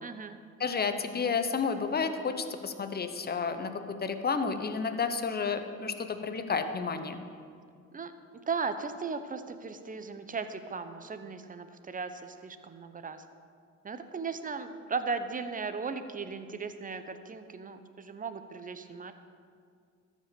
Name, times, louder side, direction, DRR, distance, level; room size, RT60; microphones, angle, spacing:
voice 1, 0.0-0.4 7.9-8.1 8.5-13.2 13.8-19.1, right 5 dB, 25° right, 10 dB, 0.8 m, -37 dB
voice 2, 0.6-7.2, left 5 dB, 30° left, 8 dB, 0.9 m, -31 dB
13.0 x 5.3 x 6.8 m, 2.2 s
cardioid pair, 90°, 30 cm